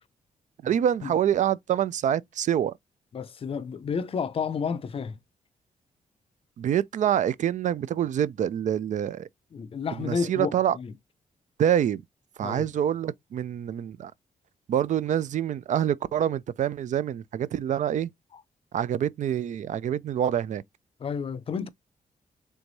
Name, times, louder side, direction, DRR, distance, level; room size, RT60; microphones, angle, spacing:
voice 1, 0.6-2.7 6.6-9.3 10.0-10.8 11.6-12.0 12.4-14.1 14.7-18.1 18.7-20.6, right 10 dB, 60° right, 0.4 m, -26 dB
voice 2, 3.1-5.2 9.5-10.9 12.4-12.7 21.0-21.7, left 6 dB, 40° left, 0.5 m, -31 dB
3.4 x 3.1 x 3.9 m
cardioid pair, 105°, 14 cm